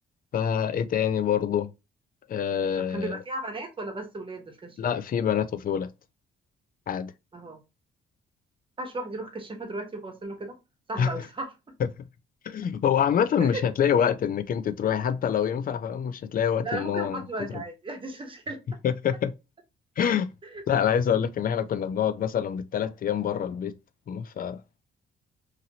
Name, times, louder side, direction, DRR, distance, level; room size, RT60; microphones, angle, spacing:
voice 1, 0.3-1.7 2.3-3.2 4.8-5.9 6.9-7.1 11.0-11.1 12.4-17.2 18.8-19.3 20.0-20.3 20.7-23.7 24.1-24.6, left 8 dB, 45° left, 0.4 m, -26 dB
voice 2, 2.8-4.9 7.3-7.6 8.8-10.6 10.9-11.5 13.4-13.6 16.6-18.6 20.4-20.6, right 2 dB, 25° right, 1.0 m, -35 dB
2.8 x 2.5 x 2.8 m
cardioid pair, 90°, 20 cm